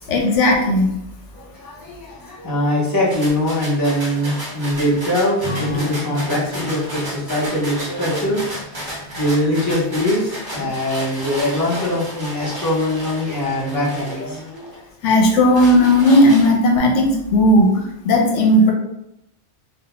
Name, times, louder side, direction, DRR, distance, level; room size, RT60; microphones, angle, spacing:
voice 1, 0.1-0.9 15.0-18.7, left 1 dB, 80° left, 0 dB, 0.9 m, -15 dB
voice 2, 1.3-14.6, left 1 dB, 25° left, -7 dB, 0.6 m, -22 dB
sound 1, 3.1-14.8 15.2-16.8, equal, 25° right, 0.5 m, -32 dB
Acoustic guitar / Strum, 5.4-10.2, left 2 dB, 5° right, 1.1 m, -33 dB
2.2 x 2.1 x 2.9 m, 0.82 s
omnidirectional pair, 1.2 m